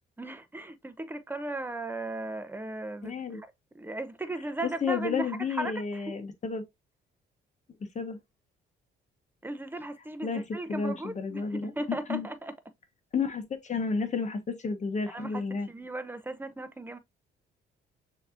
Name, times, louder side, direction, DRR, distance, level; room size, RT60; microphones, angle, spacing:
voice 1, 0.2-3.4 3.7-6.0 9.4-12.5 15.1-15.4 15.7-17.0, right 2 dB, 10° right, 0.8 m, -37 dB
voice 2, 3.0-3.4 4.6-6.6 7.9-8.2 10.2-12.3 13.1-15.7, left 5 dB, 35° left, 1.3 m, -31 dB
6.4 x 3.0 x 2.5 m
cardioid pair, 90°, 20 cm